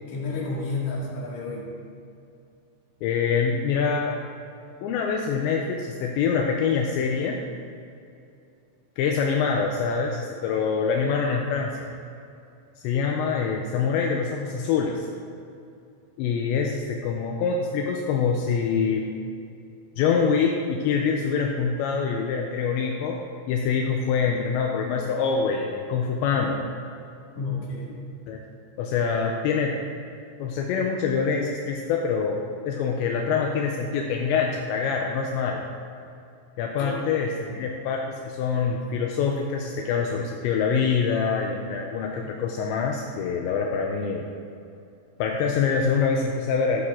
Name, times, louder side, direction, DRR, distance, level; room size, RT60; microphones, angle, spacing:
voice 1, 0.1-1.6 27.4-28.0 36.8-36.9 37.5-37.6, left 3 dB, 50° left, -5 dB, 2.6 m, -31 dB
voice 2, 3.0-4.2 4.8-7.4 9.0-11.8 12.8-15.1 16.2-19.1 20.0-23.2 23.5-26.6 28.3-28.4 28.8-29.8 30.4-35.6 36.6-44.3 45.2-46.8, left 5 dB, 85° left, 1 dB, 2.6 m, -25 dB
13.5 x 7.9 x 3.7 m, 2.5 s
omnidirectional pair, 5.7 m